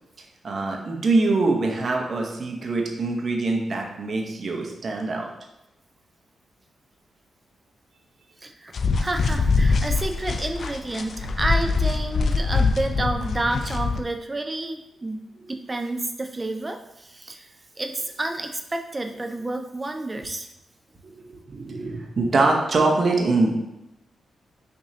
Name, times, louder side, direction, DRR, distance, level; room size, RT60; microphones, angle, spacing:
voice 1, 0.4-5.3 21.0-21.2 21.5-23.5, right 3 dB, 55° right, 1 dB, 0.8 m, -23 dB
voice 2, 8.4-17.5 17.8-20.5, right 2 dB, 30° right, 5 dB, 0.4 m, -30 dB
sound 1, 8.7-14.0, left 4 dB, 65° left, 0.3 m, -23 dB
6.0 x 2.7 x 2.8 m, 0.88 s
cardioid pair, 60°, 0 cm